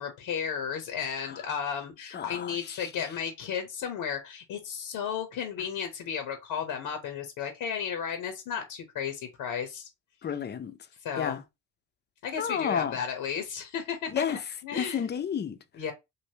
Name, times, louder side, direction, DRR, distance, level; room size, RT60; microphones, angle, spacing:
voice 1, 0.0-9.9 11.0-11.4 12.2-15.1 15.7-15.9, left 7 dB, 75° left, 0.9 m, -34 dB
voice 2, 2.1-2.9 10.2-10.7 11.2-11.4 12.4-13.0 14.1-14.4 14.7-15.6, left 7 dB, 30° left, 0.5 m, -31 dB
3.2 x 2.6 x 2.7 m
cardioid pair, 90°, 35 cm